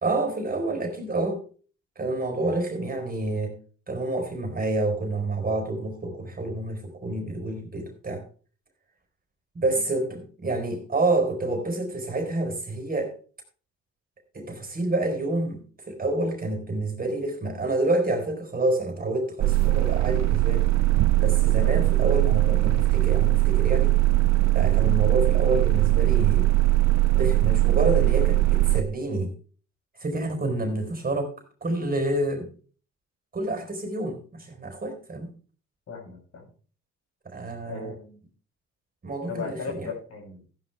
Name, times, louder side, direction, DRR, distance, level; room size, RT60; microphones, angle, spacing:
voice 1, 0.0-1.4 2.0-3.6 3.9-8.2 9.5-13.1 14.3-20.7 21.2-24.0 24.5-26.5 27.1-29.3 30.0-31.3 31.6-32.5 33.3-35.3 37.2-38.0 39.0-39.9, right 2 dB, 30° right, 4 dB, 4.2 m, -28 dB
sound 1, 19.4-28.8, right 19 dB, 60° right, 0.5 m, -20 dB
voice 2, 35.9-36.4 37.6-38.2 39.3-40.4, left 4 dB, 55° left, 0 dB, 7.5 m, -37 dB
15.0 x 10.5 x 3.4 m, 0.41 s
cardioid pair, 90°, 30 cm